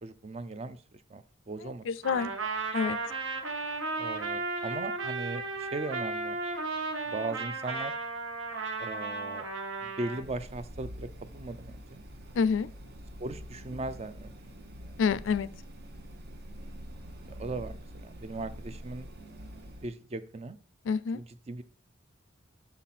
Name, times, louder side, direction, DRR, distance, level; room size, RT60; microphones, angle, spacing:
voice 1, 0.0-0.8 1.1-1.8 4.0-6.4 7.0-7.9 8.8-9.5 9.8-11.1 11.3-12.0 13.2-14.3 17.4-19.1 19.8-20.6 21.1-21.6, right 2 dB, 30° right, 0.4 m, -38 dB
voice 2, 1.6-2.3 2.7-3.0 12.4-12.7 15.0-15.5 20.9-21.2, left 5 dB, 70° left, 0.4 m, -28 dB
Trumpet, 2.0-10.2, right 3 dB, 80° right, 1.1 m, -34 dB
sound 1, 10.1-19.9, equal, 55° right, 0.9 m, -45 dB
6.3 x 5.8 x 4.1 m
head